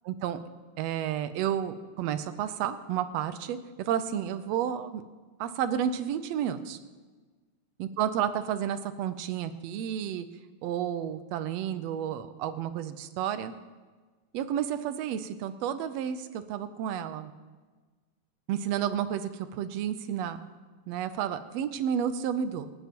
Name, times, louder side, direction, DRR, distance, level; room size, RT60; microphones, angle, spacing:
voice 1, 0.1-0.4 0.8-5.0 5.4-6.8 7.8-10.3 10.6-13.5 14.3-17.3 18.5-20.4 20.9-22.7, right 9 dB, 75° right, 11 dB, 1.6 m, -31 dB
26.0 x 9.1 x 3.0 m, 1.4 s
omnidirectional pair, 3.5 m